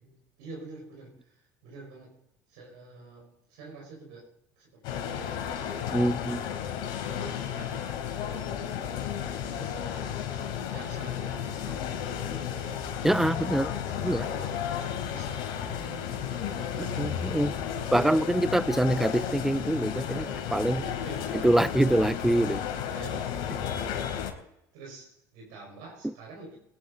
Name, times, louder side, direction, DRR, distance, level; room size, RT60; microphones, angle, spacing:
voice 1, 0.0-2.2 2.5-5.5 7.0-12.8 13.3-14.6 15.0-17.2 20.8-21.8 22.9-24.5 24.7-26.6, right 3 dB, 75° right, -1 dB, 5.6 m, -48 dB
sound 1, 4.8-24.3, left 8 dB, 65° left, 3.7 m, -33 dB
voice 2, 5.9-6.4 13.0-13.7 14.0-14.3 17.0-17.5 17.9-20.8 21.4-22.6, right 1 dB, 5° right, 20 dB, 0.5 m, -25 dB
22.0 x 11.0 x 4.1 m, 0.79 s
hypercardioid pair, 80°, 9 cm